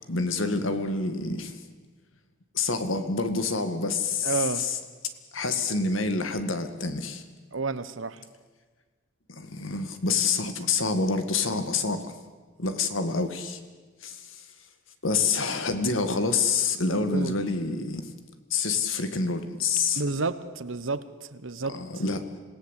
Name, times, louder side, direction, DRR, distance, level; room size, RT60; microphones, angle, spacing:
voice 1, 0.1-1.6 2.5-4.3 4.6-4.8 5.3-7.2 9.3-12.1 12.6-13.6 14.0-14.5 15.0-18.1 18.5-20.0 21.7-22.2, left 4 dB, 85° left, 9 dB, 2.0 m, -27 dB
voice 2, 4.2-4.6 7.5-8.2 17.1-17.3 19.9-22.0, right 3 dB, 80° right, 14 dB, 1.2 m, -31 dB
26.5 x 17.5 x 8.3 m, 1.4 s
head